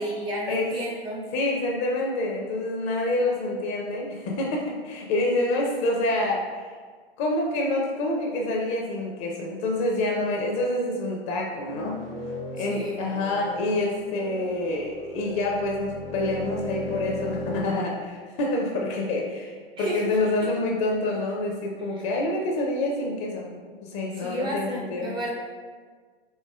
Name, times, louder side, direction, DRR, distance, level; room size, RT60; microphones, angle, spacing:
voice 1, 0.0-1.2 12.6-13.0 19.8-20.0 24.2-25.3, equal, 15° right, -3 dB, 0.5 m, -31 dB
voice 2, 1.3-6.7 7.2-12.0 12.5-25.1, left 2 dB, 35° left, 0 dB, 0.5 m, -27 dB
sound 1, 11.5-17.7, left 1 dB, 75° right, 1.3 m, -36 dB
4.3 x 2.8 x 2.2 m, 1.5 s
figure-of-eight pair, 100°, 30 cm